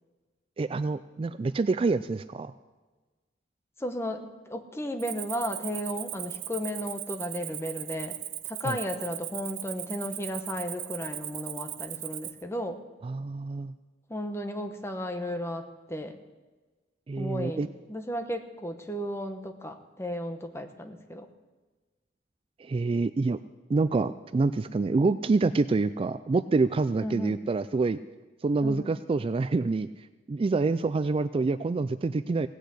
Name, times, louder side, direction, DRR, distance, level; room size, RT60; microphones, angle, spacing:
voice 1, 0.6-2.5 8.6-8.8 13.0-13.7 17.1-17.7 22.6-23.4 23.7-28.0 28.4-29.9 30.3-32.5, right 3 dB, 30° right, 13 dB, 0.3 m, -26 dB
voice 2, 3.8-8.2 8.4-12.8 14.1-16.2 17.2-21.3 27.0-27.4 28.6-28.9, equal, 15° left, 6 dB, 1.0 m, -34 dB
Cricket, 5.0-12.4, right 14 dB, 85° right, 0.6 m, -38 dB
17.5 x 6.5 x 8.3 m, 1.2 s
head